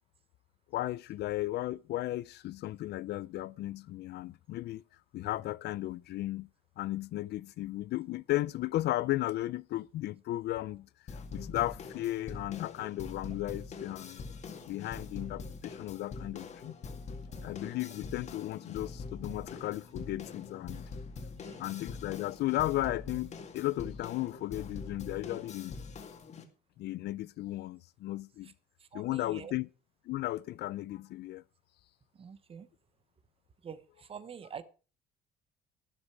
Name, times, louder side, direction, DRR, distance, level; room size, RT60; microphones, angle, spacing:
voice 1, 0.7-4.8 5.1-6.5 6.8-10.9 11.3-14.2 14.7-16.8 17.4-20.8 21.6-25.8 26.8-28.5 28.9-29.7 30.1-31.4, left 16 dB, 70° left, 0.5 m, -35 dB
sound 1, 11.1-26.4, left 4 dB, 40° left, 2.4 m, -44 dB
voice 2, 21.4-21.7 28.8-29.5 32.2-32.7 33.6-34.6, right 7 dB, 30° right, 1.1 m, -47 dB
13.5 x 12.5 x 4.7 m
cardioid pair, 160°, 18 cm